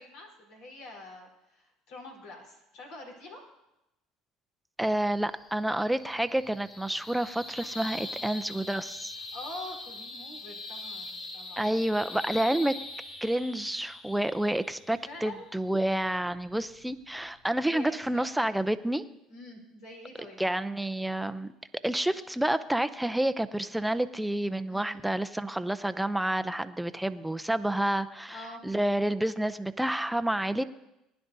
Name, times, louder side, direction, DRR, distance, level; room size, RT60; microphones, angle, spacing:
voice 1, 0.0-3.4 9.2-11.7 15.1-15.5 17.6-18.2 19.3-20.4 24.7-25.0 28.3-28.6, left 2 dB, 80° left, -1 dB, 4.1 m, -45 dB
voice 2, 4.8-9.1 11.6-12.8 13.2-19.1 20.4-21.5 21.8-30.6, right 1 dB, 5° right, 11 dB, 0.5 m, -29 dB
sound 1, 4.9-17.6, left 2 dB, 40° left, 2.3 m, -43 dB
19.5 x 10.5 x 2.7 m, 0.90 s
supercardioid pair, 90°, 0 cm